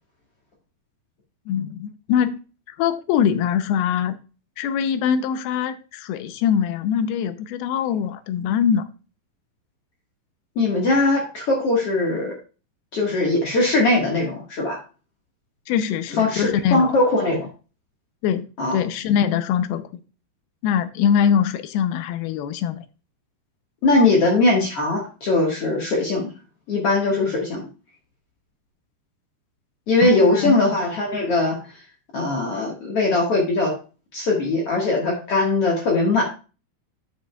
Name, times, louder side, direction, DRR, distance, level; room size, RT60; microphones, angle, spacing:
voice 1, 1.5-2.4 2.7-4.1 4.6-8.8 15.7-17.0 17.3-17.4 18.2-18.5 18.7-20.0 20.6-22.9 30.0-30.6, left 8 dB, 80° left, 11 dB, 2.6 m, -23 dB
voice 2, 10.6-12.3 12.9-14.8 16.2-17.5 18.6-18.8 23.8-26.3 26.7-27.7 29.9-31.6 32.1-33.7 34.1-36.2, left 2 dB, 50° left, -1 dB, 1.9 m, -20 dB
11.0 x 6.1 x 2.3 m, 0.33 s
omnidirectional pair, 4.5 m